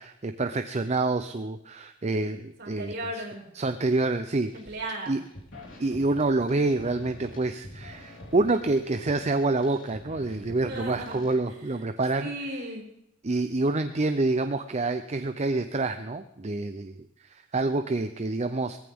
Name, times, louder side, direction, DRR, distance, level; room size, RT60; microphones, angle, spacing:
voice 1, 0.0-2.9 3.6-4.5 5.1-5.2 5.8-12.3 13.2-18.8, right 2 dB, 35° right, 8 dB, 0.6 m, -27 dB
voice 2, 2.6-3.4 4.5-5.2 10.6-11.2 11.5-11.8 12.2-12.8, right 1 dB, 55° right, -4 dB, 5.8 m, -36 dB
sound 1, 4.5-4.8 5.1-11.3, left 1 dB, 65° left, 4.3 m, -46 dB
18.5 x 15.0 x 3.6 m, 0.80 s
head